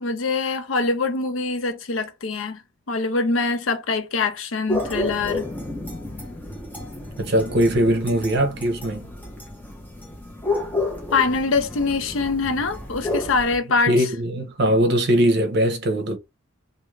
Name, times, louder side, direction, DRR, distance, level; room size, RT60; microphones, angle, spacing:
voice 1, 0.0-2.6 2.9-5.5 11.1-14.0, left 4 dB, 70° left, 0.6 m, -24 dB
sound 1, 4.7-13.6, left 2 dB, 10° left, 0.7 m, -31 dB
voice 2, 7.2-9.1 13.9-16.2, equal, 55° right, 0.7 m, -20 dB
2.6 x 2.5 x 3.1 m
head